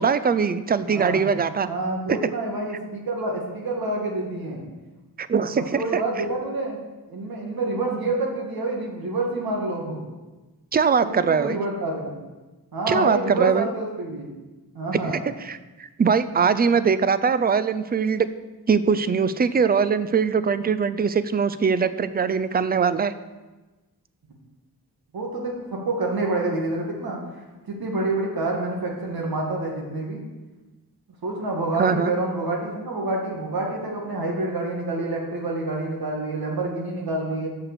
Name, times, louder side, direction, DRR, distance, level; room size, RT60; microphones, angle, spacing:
voice 1, 0.0-1.7 2.1-2.2 5.2-5.8 10.7-11.6 12.9-13.7 15.1-18.3 18.7-23.1 31.8-32.1, right 6 dB, 25° right, 14 dB, 0.3 m, -22 dB
voice 2, 0.8-1.3 1.6-4.7 5.7-6.8 7.1-10.0 11.0-12.1 12.7-14.3 14.7-15.2 25.1-30.2 31.2-37.5, right 2 dB, 70° right, 0 dB, 1.9 m, -27 dB
6.7 x 5.9 x 6.7 m, 1.2 s
wide cardioid pair, 130°, 38 cm